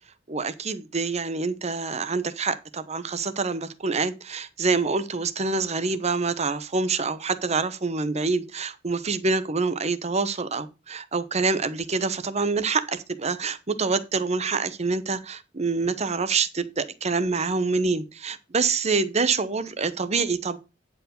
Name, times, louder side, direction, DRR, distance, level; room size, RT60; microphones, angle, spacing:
voice 1, 0.3-20.6, right 4 dB, 35° right, 0.8 m, -26 dB
9.7 x 4.7 x 5.2 m
head